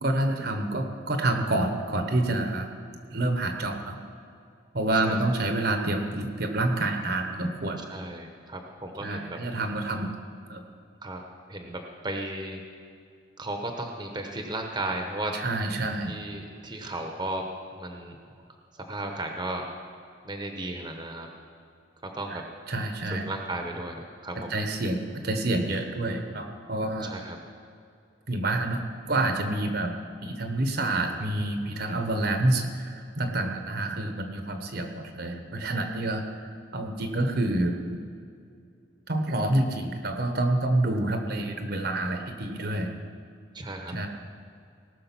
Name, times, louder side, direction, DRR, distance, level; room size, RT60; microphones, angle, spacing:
voice 1, 0.0-2.7 3.1-4.0 4.7-7.8 9.0-10.1 10.5-10.6 15.3-16.1 22.3-23.3 24.3-27.1 28.3-29.9 30.2-37.8 39.1-43.0 43.9-44.1, right 2 dB, 50° right, 5 dB, 1.0 m, -28 dB
voice 2, 7.8-9.4 11.0-11.2 11.5-12.6 13.4-15.3 16.1-17.4 17.8-18.2 18.9-19.6 20.2-21.3 22.1-22.4 23.1-24.5 27.0-27.4 43.5-43.9, right 2 dB, 20° right, 3 dB, 0.9 m, -35 dB
18.5 x 6.3 x 6.0 m, 2.3 s
head